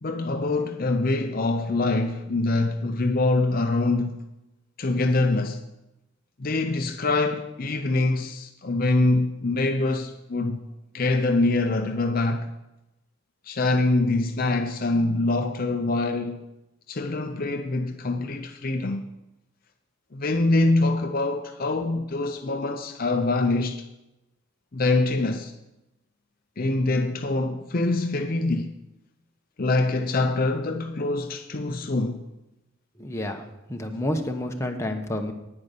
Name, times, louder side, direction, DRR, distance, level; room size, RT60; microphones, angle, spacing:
voice 1, 0.0-4.2 4.8-5.6 6.4-10.6 10.9-12.5 13.4-16.4 16.9-19.0 20.1-23.9 24.7-25.5 26.6-28.7 29.6-32.2, left 2 dB, 45° left, 0.6 m, -24 dB
voice 2, 33.0-35.3, left 1 dB, 15° left, 1.1 m, -29 dB
9.6 x 9.5 x 6.8 m
head